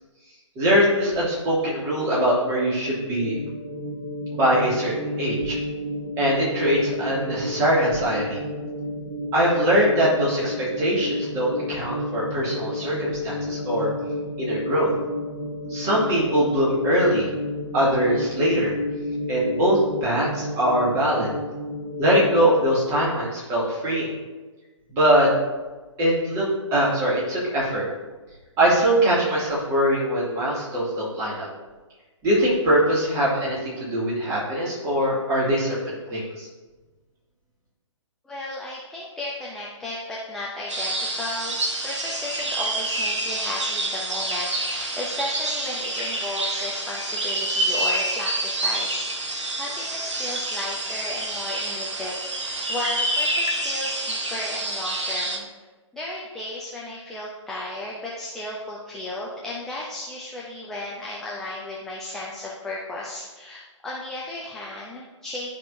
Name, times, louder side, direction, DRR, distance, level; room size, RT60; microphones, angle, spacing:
voice 1, 0.6-3.4 4.3-5.6 6.2-8.4 9.3-13.9 14.4-14.9 15.7-17.3 17.7-18.7 19.3-21.3 22.0-24.1 24.9-25.3 26.0-27.8 28.6-31.5 32.2-35.8 36.1-36.5, equal, 20° right, -6 dB, 2.3 m, -22 dB
sound 1, 3.2-22.4, left 1 dB, 45° right, 2.1 m, -32 dB
voice 2, 38.2-55.5 55.9-65.5, left 2 dB, 5° left, -5 dB, 0.5 m, -34 dB
sound 2, 40.7-55.4, right 2 dB, 70° right, 1.3 m, -27 dB
11.5 x 5.1 x 2.6 m, 1.3 s
figure-of-eight pair, 135°, 16 cm